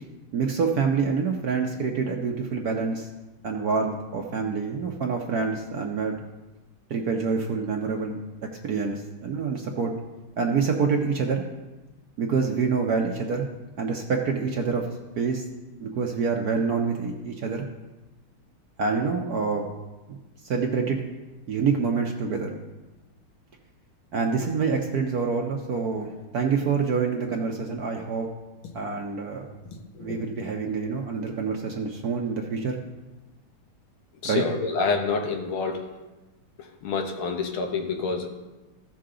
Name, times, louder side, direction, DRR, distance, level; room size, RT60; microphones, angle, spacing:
voice 1, 0.3-3.1 3.4-6.2 6.9-8.2 8.6-9.9 10.4-11.4 12.2-13.5 13.8-14.9 15.2-15.4 15.8-17.6 18.8-19.6 20.1-20.2 20.4-21.0 21.5-22.5 24.1-28.3 28.7-29.5 30.0-32.8 34.2-34.4, right 5 dB, 60° right, 1 dB, 1.0 m, -26 dB
voice 2, 34.2-35.8 36.8-38.3, left 4 dB, 75° left, 4 dB, 1.9 m, -27 dB
15.5 x 5.8 x 3.8 m, 1.1 s
omnidirectional pair, 2.3 m